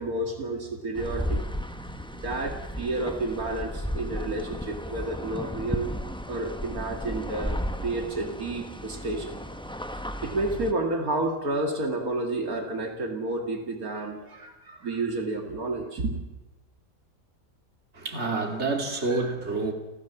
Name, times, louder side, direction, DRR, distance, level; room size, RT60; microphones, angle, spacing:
voice 1, 0.0-6.0 6.3-9.4 10.2-16.2, right 2 dB, 75° right, 3 dB, 2.7 m, -31 dB
sound 1, 0.9-10.7, equal, 5° left, 0.9 m, -34 dB
voice 2, 17.9-19.7, right 3 dB, 50° right, 3 dB, 3.0 m, -28 dB
30.0 x 14.5 x 7.2 m, 1.0 s
omnidirectional pair, 1.5 m